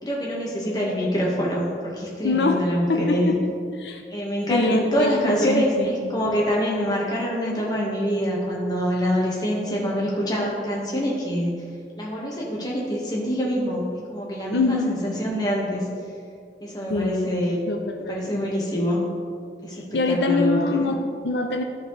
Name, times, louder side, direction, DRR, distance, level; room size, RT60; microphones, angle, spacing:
voice 1, 0.0-3.4 4.1-11.6 12.0-15.8 16.6-17.6 18.1-19.0 19.6-20.9, equal, 20° left, -4 dB, 1.5 m, -25 dB
voice 2, 2.2-2.6 2.9-3.4 3.8-4.0 4.5-6.2 14.5-15.0 16.9-18.5 19.9-21.6, left 3 dB, 85° left, 5 dB, 0.5 m, -24 dB
13.5 x 4.5 x 3.2 m, 2.3 s
head